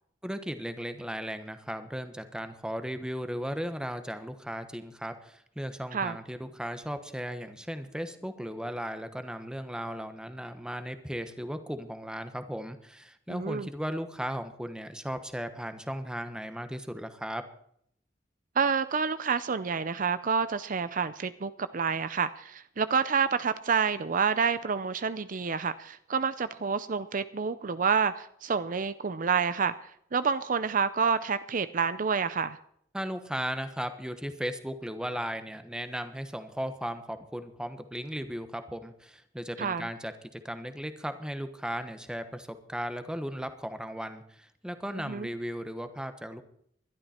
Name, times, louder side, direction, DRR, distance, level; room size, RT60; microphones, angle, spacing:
voice 1, 0.2-17.4 32.9-46.4, equal, 5° right, 9 dB, 1.2 m, -36 dB
voice 2, 13.3-13.7 18.6-29.7 30.1-32.6 39.6-39.9 45.1-45.3, right 6 dB, 50° right, 13 dB, 0.6 m, -28 dB
21.0 x 12.0 x 4.4 m, 0.69 s
head